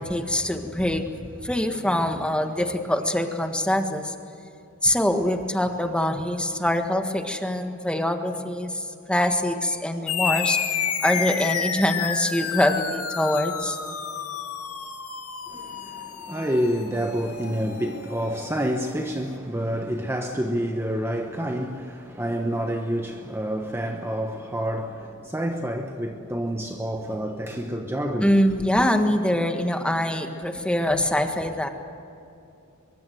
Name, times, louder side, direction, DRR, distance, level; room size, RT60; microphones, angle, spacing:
voice 1, 0.0-4.1 4.8-8.8 9.1-10.6 11.0-13.8 28.2-31.7, left 1 dB, 5° left, 1.6 m, -24 dB
sound 1, 10.1-19.0, left 7 dB, 85° left, 2.1 m, -30 dB
voice 2, 15.5-28.4, equal, 10° right, 1.1 m, -28 dB
23.5 x 23.5 x 7.8 m
head